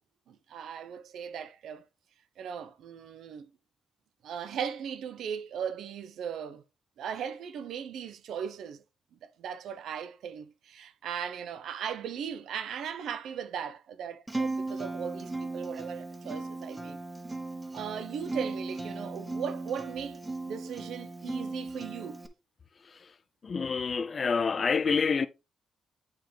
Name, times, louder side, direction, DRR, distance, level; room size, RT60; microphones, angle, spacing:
voice 1, 0.3-1.8 2.4-3.5 4.2-6.6 7.0-8.8 9.2-17.0 17.7-20.2 20.5-22.2, right 8 dB, 80° right, 0.7 m, -38 dB
Acoustic guitar, 14.3-22.3, right 2 dB, 10° right, 0.8 m, -37 dB
voice 2, 23.4-25.3, left 5 dB, 35° left, 0.5 m, -27 dB
9.1 x 3.6 x 3.3 m
wide cardioid pair, 150°, 0 cm